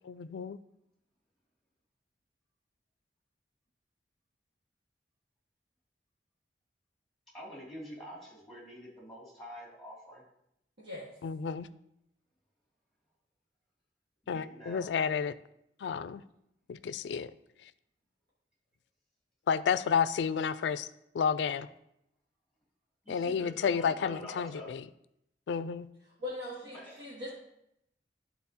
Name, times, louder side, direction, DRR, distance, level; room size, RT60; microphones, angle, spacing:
voice 1, 0.1-0.6 11.2-11.7 14.3-15.3 15.8-16.2 16.7-17.3 19.5-20.9 21.1-21.7 23.1-24.8 25.5-25.9, left 6 dB, 75° left, 15 dB, 0.3 m, -31 dB
voice 2, 7.3-10.2 14.2-14.9 23.0-24.7 26.8-27.0, equal, ahead, -4 dB, 2.4 m, -47 dB
voice 3, 10.8-11.1 26.2-27.3, left 2 dB, 75° right, -8 dB, 1.7 m, -40 dB
11.5 x 4.1 x 2.8 m, 0.79 s
head